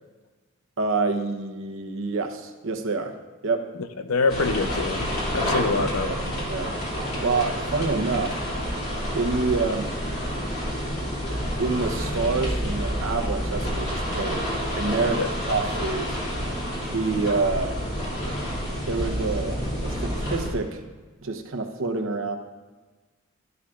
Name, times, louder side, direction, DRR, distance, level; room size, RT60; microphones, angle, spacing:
voice 1, 0.8-3.1 3.4-3.7 5.7-6.8 7.2-8.4 9.1-10.0 11.6-14.5 14.7-16.2 16.9-17.7 18.9-20.8 21.2-22.4, right 4 dB, 65° right, 0.9 m, -27 dB
voice 2, 4.0-6.1 15.2-15.3, left 4 dB, 85° left, 0.6 m, -25 dB
sound 1, 4.3-20.5, equal, 50° left, 2.7 m, -29 dB
13.0 x 11.5 x 2.5 m
head